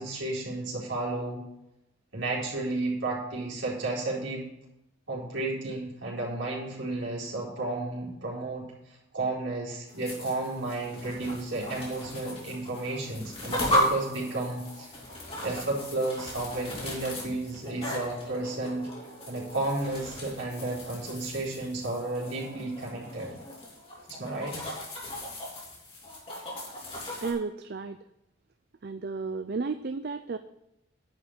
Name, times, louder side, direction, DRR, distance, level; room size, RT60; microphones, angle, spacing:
voice 1, 0.0-1.4 2.1-4.4 5.1-8.6 9.1-14.9 15.4-18.9 19.3-23.3 24.1-24.6, right 2 dB, 65° right, -4 dB, 4.3 m, -32 dB
sound 1, 9.9-27.3, left 1 dB, 30° left, 3.2 m, -36 dB
voice 2, 27.2-28.0 28.8-30.4, right 4 dB, 50° right, 10 dB, 0.4 m, -33 dB
11.0 x 5.8 x 8.0 m, 0.86 s
head